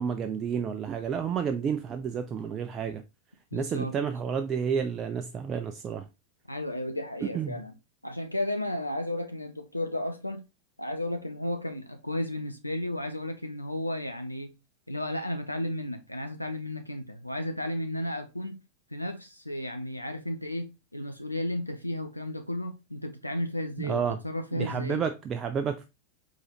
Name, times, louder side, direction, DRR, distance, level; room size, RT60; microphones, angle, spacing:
voice 1, 0.0-3.0 3.5-6.1 7.2-7.6 23.8-24.2 24.5-25.9, right 7 dB, 25° right, 0.4 m, -30 dB
voice 2, 3.5-3.9 6.5-7.7 8.0-10.4 10.8-14.5 14.9-18.5 18.9-25.0, left 1 dB, 85° left, 0.4 m, -33 dB
4.8 x 3.8 x 2.8 m
figure-of-eight pair, 90°, 0 cm